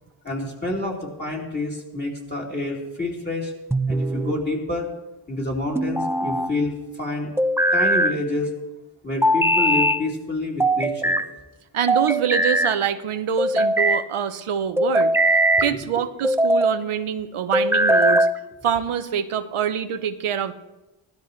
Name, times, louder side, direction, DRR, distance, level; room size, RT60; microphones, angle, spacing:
voice 1, 0.2-3.5 3.9-4.9 5.3-7.3 7.7-8.5 9.0-11.2 15.6-15.8, left 2 dB, 20° left, -2 dB, 3.2 m, -28 dB
sound 1, 3.7-4.4 5.7-6.5 7.4-8.2 9.2-10.0 10.6-11.3 11.9-12.7 13.4-14.0 14.8-15.7 16.2-16.8 17.5-18.4, right 1 dB, 5° right, 0.5 m, -20 dB
voice 2, 11.7-15.1 15.6-18.3 18.6-20.5, right 8 dB, 85° right, 10 dB, 0.7 m, -25 dB
17.0 x 12.5 x 3.1 m, 1.0 s
wide cardioid pair, 60°, 49 cm